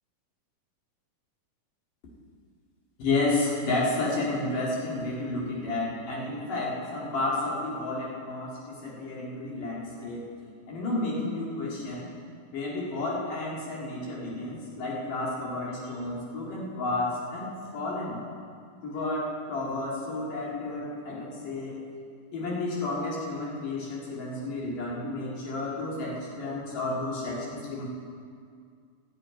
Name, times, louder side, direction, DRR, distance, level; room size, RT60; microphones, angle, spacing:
voice 1, 3.0-10.3 10.7-12.1 12.5-18.2 18.8-21.8 22.3-27.8, left 2 dB, 60° left, -5 dB, 3.5 m, -31 dB
11.0 x 6.7 x 9.3 m, 2.2 s
omnidirectional pair, 4.4 m